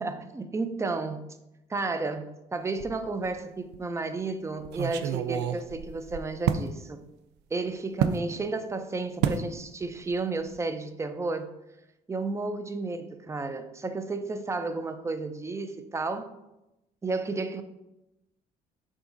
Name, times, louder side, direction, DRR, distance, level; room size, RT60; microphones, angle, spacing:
voice 1, 0.0-1.4 1.7-7.0 7.5-11.5 12.1-16.3 17.0-17.6, right 3 dB, 15° right, 0.5 m, -32 dB
sound 1, 2.8-3.4 3.7-3.8 4.6-6.7 8.0-8.2 9.2-9.5 9.8-10.1 10.4-10.6, right 9 dB, 85° right, 0.4 m, -29 dB
5.0 x 3.7 x 5.1 m
cardioid pair, 110°, 17 cm